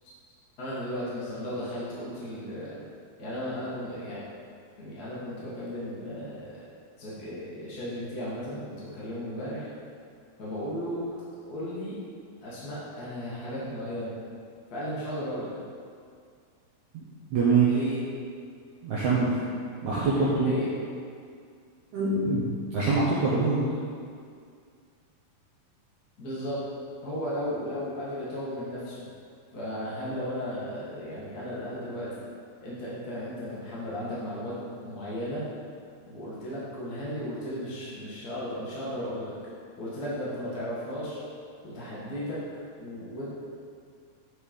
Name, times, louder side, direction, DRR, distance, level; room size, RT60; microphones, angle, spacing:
voice 1, 0.6-2.8 3.2-4.2 4.8-6.7 7.0-9.7 10.4-11.0 11.4-12.0 12.4-14.1 14.7-15.5 17.7-18.0 20.4-20.7 26.2-26.6 27.0-29.1 29.5-32.2 32.6-34.5 34.8-35.4 36.1-39.3 39.8-41.2 41.6-42.4 42.8-43.3, equal, 55° left, -9 dB, 1.0 m, -35 dB
voice 2, 17.3-17.7 18.8-19.3 19.8-20.5 21.9-22.5 22.7-23.7, right 4 dB, 70° right, -7 dB, 1.9 m, -24 dB
9.0 x 4.6 x 5.2 m, 2.3 s
omnidirectional pair, 4.3 m